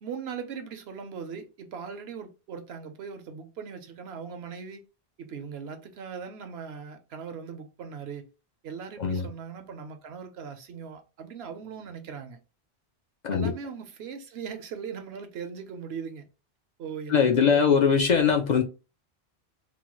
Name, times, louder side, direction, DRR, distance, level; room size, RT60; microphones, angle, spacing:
voice 1, 0.0-4.8 5.2-8.3 8.6-12.4 13.3-16.3 16.8-17.9, right 6 dB, 80° right, 0.9 m, -39 dB
voice 2, 17.1-18.6, left 6 dB, 55° left, 0.5 m, -21 dB
3.0 x 2.2 x 2.9 m
omnidirectional pair, 1.1 m